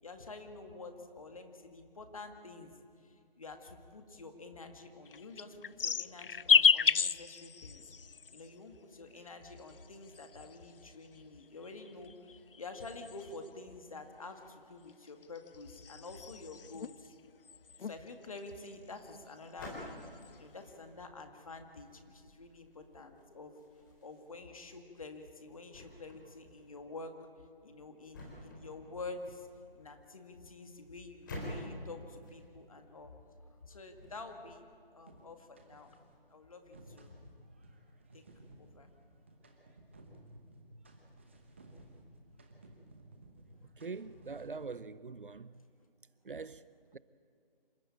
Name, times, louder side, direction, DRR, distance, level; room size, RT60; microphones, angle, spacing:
voice 1, 0.0-2.7 3.0-7.9 8.3-17.1 17.8-20.0 20.4-23.5 24.0-27.2 27.6-29.5 29.8-33.1 33.7-34.6 34.9-36.0 36.3-37.2 38.1-38.2 38.6-38.9, left 3 dB, 35° left, 2.0 m, -48 dB
sound 1, 5.1-8.5 9.4-10.8 11.6-13.5 14.9-17.1 17.5-18.0 18.2-19.3 19.7-20.3, left 6 dB, 70° left, 0.5 m, -32 dB
sound 2, 18.4-34.6, left 1 dB, 20° left, 3.8 m, -51 dB
sound 3, 35.1-36.2 36.5-44.8, right 1 dB, 15° right, 1.0 m, -57 dB
voice 2, 43.7-45.6 46.2-47.0, right 4 dB, 60° right, 0.7 m, -44 dB
27.0 x 13.0 x 8.9 m
figure-of-eight pair, 165°, 29 cm